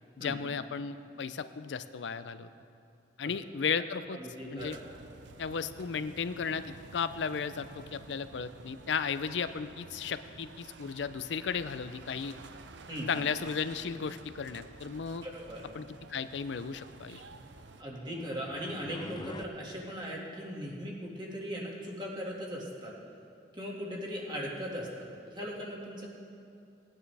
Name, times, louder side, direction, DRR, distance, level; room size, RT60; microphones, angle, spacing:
voice 1, 0.2-2.5 3.2-4.2 4.5-4.8 5.4-6.6 6.9-12.3 13.1-15.3 15.7-17.2, left 6 dB, 80° left, 12 dB, 0.5 m, -35 dB
voice 2, 4.1-4.8 12.9-13.1 15.2-15.6 17.8-22.9 23.5-26.1, equal, 25° right, -3 dB, 1.9 m, -39 dB
sound 1, 4.6-17.8, right 4 dB, 85° right, 0.6 m, -51 dB
sound 2, 17.5-19.5, left 2 dB, 25° left, 0.5 m, -46 dB
18.5 x 9.7 x 3.4 m, 2.5 s
head